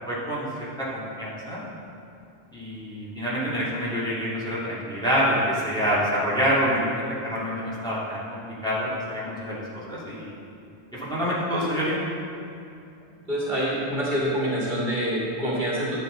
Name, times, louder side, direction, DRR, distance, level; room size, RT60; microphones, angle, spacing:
voice 1, 0.1-1.6 2.5-10.3 10.9-12.0, equal, 5° left, -9 dB, 2.4 m, -27 dB
voice 2, 13.3-16.0, equal, 45° right, -6 dB, 1.9 m, -26 dB
11.5 x 8.0 x 3.9 m, 2.6 s
omnidirectional pair, 1.1 m